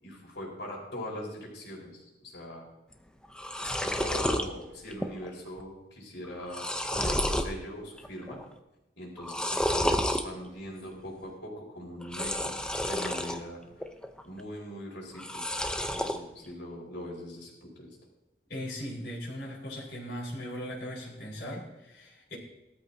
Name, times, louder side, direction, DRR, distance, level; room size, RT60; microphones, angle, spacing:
voice 1, 0.0-2.7 3.6-8.4 9.0-12.5 12.8-13.6 14.2-15.4 15.9-17.9, left 1 dB, 90° left, -2 dB, 4.7 m, -41 dB
sound 1, 2.9-3.0 3.2-4.5 4.9-5.3 5.6-5.7 6.2-7.5 8.0-8.4 9.2-10.2 12.0-13.4 13.8-14.4 15.1-16.2, left 1 dB, 5° left, 0.7 m, -30 dB
voice 2, 18.5-22.4, equal, 70° left, -6 dB, 4.8 m, -38 dB
18.5 x 13.5 x 2.8 m, 0.95 s
head